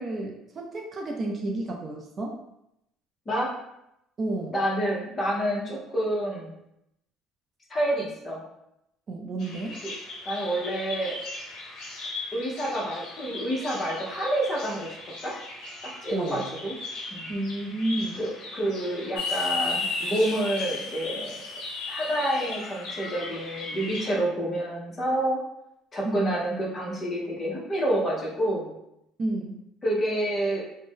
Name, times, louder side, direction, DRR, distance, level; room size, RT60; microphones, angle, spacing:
voice 1, 0.0-2.4 4.2-4.5 9.1-9.8 16.1-16.5 17.3-18.2 26.0-26.4 29.2-29.6, right 2 dB, 30° right, 1 dB, 0.3 m, -31 dB
voice 2, 4.5-6.5 7.7-8.4 9.8-9.9 10.3-11.2 12.3-15.0 15.2-15.3 16.0-16.7 17.1-17.3 18.2-21.3 21.9-25.4 25.9-28.7 29.8-30.6, right 1 dB, 25° left, -3 dB, 0.7 m, -28 dB
Bird vocalization bird call bird song, 9.4-24.2, left 2 dB, 55° left, 0.9 m, -39 dB
sound 1, 19.2-23.3, left 4 dB, 85° left, 0.4 m, -33 dB
2.5 x 2.0 x 3.6 m, 0.82 s
cardioid pair, 140°, 0 cm